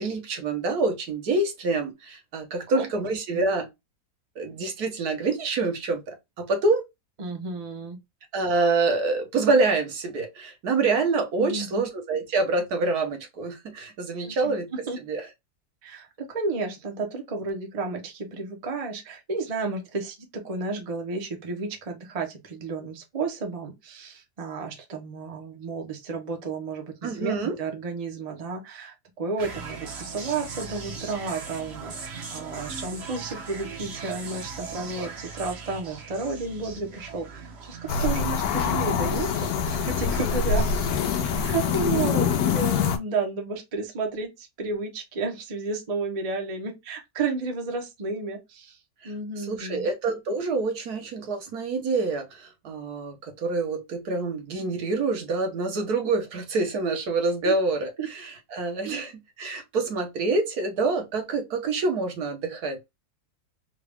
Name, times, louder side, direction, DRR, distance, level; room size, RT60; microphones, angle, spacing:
voice 1, 0.0-3.7 4.4-6.8 8.3-14.7 15.1-15.2 27.0-27.5 49.0-49.1 49.5-59.1 59.4-62.9, right 3 dB, 70° right, 1.4 m, -26 dB
voice 2, 7.2-8.0 11.4-11.8 14.2-15.0 15.8-40.7 41.2-48.8 49.0-49.9 57.4-57.5 58.0-58.1 58.8-59.0, right 4 dB, 30° right, 0.7 m, -32 dB
sound 1, 29.4-42.4, right 4 dB, 50° right, 1.0 m, -40 dB
sound 2, 37.9-43.0, left 6 dB, 70° left, 1.1 m, -25 dB
3.7 x 2.3 x 3.3 m
omnidirectional pair, 1.7 m